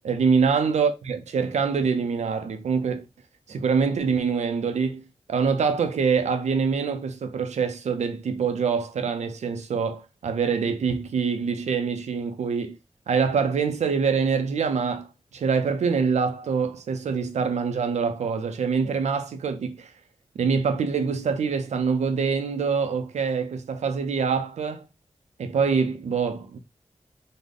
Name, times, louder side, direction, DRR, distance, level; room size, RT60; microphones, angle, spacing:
voice 1, 0.0-3.0 3.5-5.0 5.3-12.8 13.1-19.9 20.4-24.8 25.4-26.6, right 5 dB, 90° right, 0.5 m, -25 dB
3.6 x 2.1 x 3.6 m
cardioid pair, 40°, 11 cm